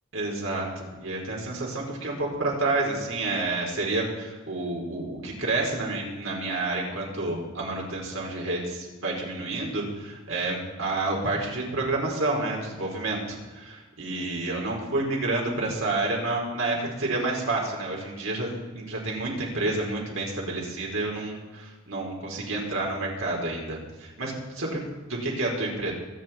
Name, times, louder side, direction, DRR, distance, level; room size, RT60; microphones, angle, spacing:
voice 1, 0.1-24.8 25.1-25.9, right 2 dB, 70° right, -2 dB, 4.7 m, -29 dB
24.0 x 9.6 x 4.5 m, 1.3 s
head